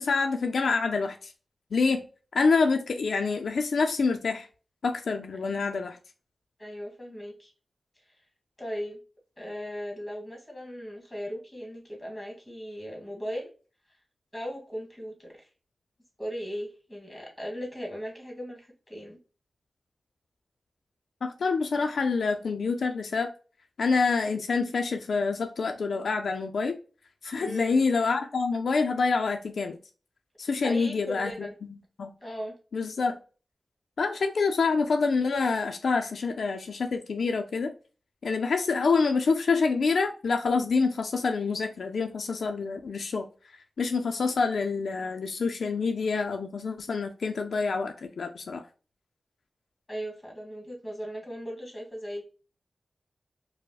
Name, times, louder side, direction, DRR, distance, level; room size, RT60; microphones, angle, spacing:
voice 1, 0.0-1.3 1.7-2.0 2.3-4.5 4.8-6.0 21.2-23.3 23.8-26.8 27.2-29.8 30.4-31.5 32.0-32.1 32.7-33.2 34.0-37.7 38.2-43.3 43.8-48.6, left 4 dB, 80° left, 4 dB, 0.4 m, -27 dB
voice 2, 6.6-7.5 8.6-9.0 9.4-13.5 14.3-15.5 16.2-19.2 27.4-27.9 30.6-31.5 32.2-32.5 49.9-52.3, equal, 10° left, 0 dB, 1.5 m, -37 dB
4.5 x 2.1 x 2.3 m, 0.36 s
wide cardioid pair, 125°, 0 cm